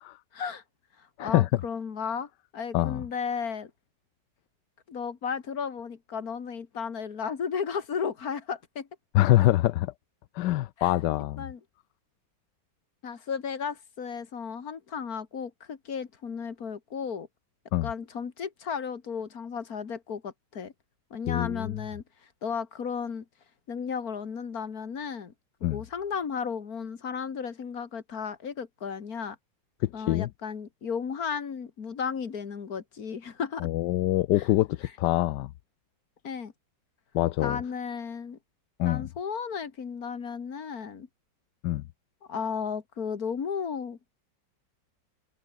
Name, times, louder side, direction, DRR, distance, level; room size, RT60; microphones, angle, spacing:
voice 1, 0.3-0.6 1.0-3.7 4.9-8.9 10.8-10.9 11.4-11.6 13.0-17.3 17.8-20.7 21.1-22.0 22.4-23.3 23.7-25.3 25.6-29.4 29.9-33.7 34.4-34.5 36.2-36.5 37.4-38.4 38.8-41.1 42.3-44.0, left 6 dB, 50° left, 2.3 m, -34 dB
voice 2, 1.2-1.5 2.7-3.0 9.1-9.9 10.3-11.4 17.7-17.9 21.3-21.8 25.6-25.8 29.8-30.3 33.6-35.5 37.1-37.6 38.8-39.1 41.6-41.8, left 15 dB, 75° left, 1.2 m, -25 dB
omnidirectional pair, 2.0 m